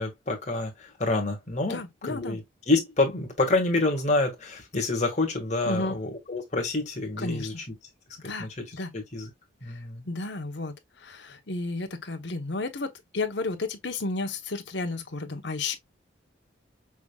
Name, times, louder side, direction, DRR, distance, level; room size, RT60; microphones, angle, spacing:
voice 1, 0.0-7.5 8.2-8.6 8.9-9.3 9.6-10.1, left 2 dB, 35° left, 1.8 m, -28 dB
voice 2, 1.6-2.4 5.6-6.0 7.2-7.5 8.2-8.9 10.0-15.7, left 3 dB, 65° left, 1.0 m, -32 dB
5.9 x 3.6 x 2.3 m
head